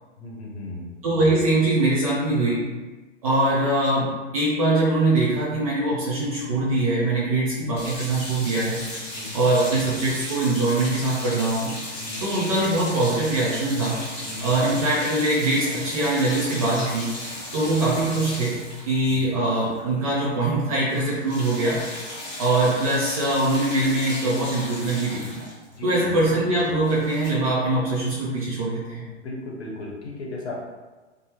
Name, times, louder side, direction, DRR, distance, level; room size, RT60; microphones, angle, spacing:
voice 1, 0.2-0.9 9.1-9.4 12.0-12.2 14.2-14.5 17.6-17.7 19.0-19.2 25.8-26.1 29.2-30.5, left 2 dB, 60° left, -2 dB, 0.8 m, -36 dB
voice 2, 1.0-2.7 3.2-8.8 9.3-11.7 12.2-14.0 14.4-17.1 17.5-18.6 18.9-21.8 22.4-25.4 25.8-29.0, right 2 dB, 30° right, -6 dB, 0.5 m, -22 dB
sound 1, 7.8-20.1 20.4-20.6 20.9-27.3, left 1 dB, 15° left, 0.7 m, -36 dB
2.6 x 2.2 x 3.0 m, 1.2 s
figure-of-eight pair, 115°, 36 cm